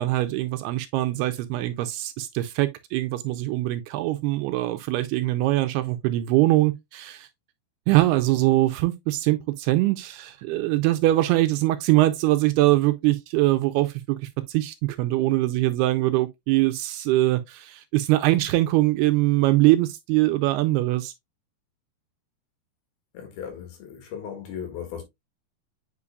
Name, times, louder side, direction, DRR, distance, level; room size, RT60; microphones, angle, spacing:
voice 1, 0.0-7.3 7.9-21.1, right 17 dB, 85° right, 2.4 m, -22 dB
voice 2, 23.1-25.0, left 8 dB, 65° left, 3.5 m, -36 dB
8.3 x 5.1 x 2.3 m
omnidirectional pair, 4.8 m